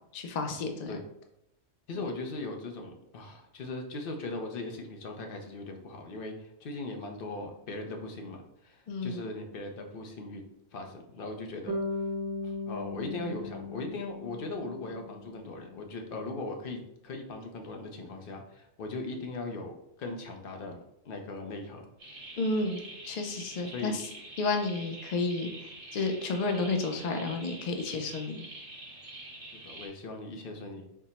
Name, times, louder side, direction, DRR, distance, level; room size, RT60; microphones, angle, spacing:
voice 1, 0.1-1.0 8.9-9.2 22.4-24.1 24.4-25.5 25.9-28.5, left 3 dB, 85° left, 4 dB, 0.3 m, -31 dB
voice 2, 1.9-8.4 8.6-10.4 10.7-11.8 12.4-19.7 20.0-20.8 21.0-21.8 23.7-24.0 29.6-30.8, left 2 dB, 55° left, 3 dB, 0.7 m, -39 dB
Bass guitar, 11.7-15.8, left 3 dB, 30° right, 0.5 m, -37 dB
sound 1, 22.0-29.9, right 2 dB, 50° right, 1.5 m, -46 dB
4.3 x 2.0 x 4.0 m, 0.82 s
omnidirectional pair, 1.3 m